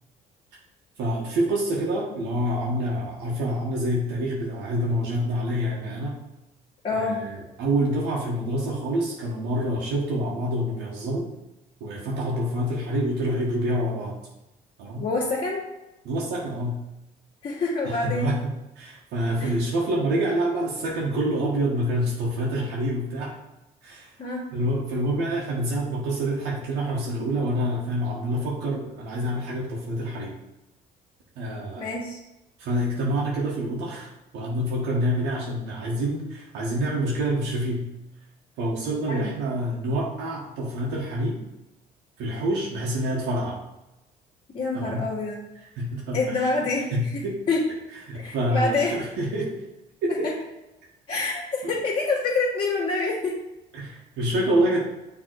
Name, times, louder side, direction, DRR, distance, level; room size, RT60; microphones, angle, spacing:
voice 1, 1.0-6.2 6.9-11.3 11.8-14.1 14.8-15.0 16.0-16.8 17.8-23.3 23.8-24.1 24.5-30.3 31.4-31.8 32.6-37.9 38.6-41.4 42.2-43.6 44.7-45.1 45.8-46.5 46.9-47.4 48.1-49.5 50.0-50.3 51.2-51.7 53.7-54.8, right 1 dB, 85° right, -4 dB, 1.5 m, -27 dB
voice 2, 6.8-7.2 15.0-15.6 17.4-18.3 19.4-19.5 24.2-24.4 31.8-32.2 39.1-39.3 44.5-45.4 46.1-47.7 48.1-49.0 50.1-50.3 51.1-53.4, left 3 dB, 35° left, -9 dB, 1.9 m, -27 dB
6.7 x 3.5 x 4.6 m, 0.94 s
cardioid pair, 110°, 17 cm